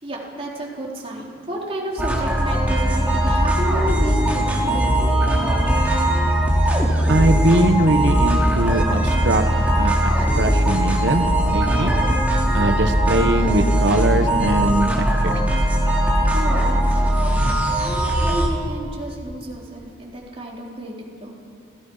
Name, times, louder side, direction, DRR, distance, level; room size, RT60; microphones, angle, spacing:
voice 1, 0.0-5.2 16.3-20.9 21.2-21.3, right 1 dB, 30° right, -3 dB, 3.9 m, -31 dB
sound 1, 2.0-18.5, right 1 dB, 10° right, 2.8 m, -19 dB
voice 2, 7.1-10.1 10.4-11.9 12.5-15.4, right 1 dB, 60° right, 7 dB, 1.2 m, -21 dB
28.5 x 17.5 x 5.6 m, 2.4 s
head